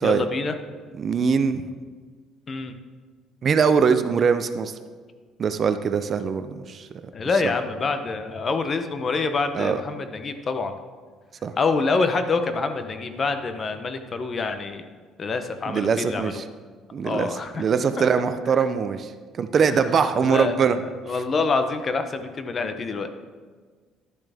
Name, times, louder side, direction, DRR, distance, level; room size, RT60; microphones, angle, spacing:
voice 1, 0.0-0.5 2.5-2.7 7.1-10.7 11.6-14.9 15.2-16.4 17.0-17.6 18.0-18.1 19.7-19.8 20.2-20.7 21.0-23.1, left 4 dB, 35° left, 8 dB, 0.8 m, -26 dB
voice 2, 1.0-1.7 3.4-4.8 5.4-6.9 9.5-9.8 11.4-11.5 15.7-16.4 16.9-17.3 17.6-19.1 19.4-20.8, right 6 dB, 40° right, 10 dB, 0.5 m, -22 dB
11.5 x 7.1 x 3.5 m, 1.5 s
cardioid pair, 115°, 0 cm